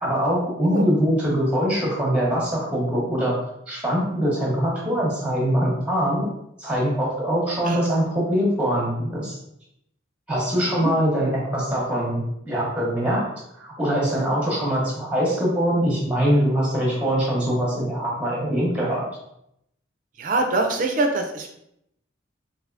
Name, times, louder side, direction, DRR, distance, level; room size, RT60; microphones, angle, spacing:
voice 1, 0.0-3.3 3.7-6.3 6.6-9.4 10.3-13.2 13.5-19.0, equal, 5° right, -4 dB, 0.9 m, -23 dB
voice 2, 20.2-21.5, right 2 dB, 40° right, 3 dB, 0.4 m, -23 dB
3.5 x 2.6 x 2.5 m, 0.78 s
head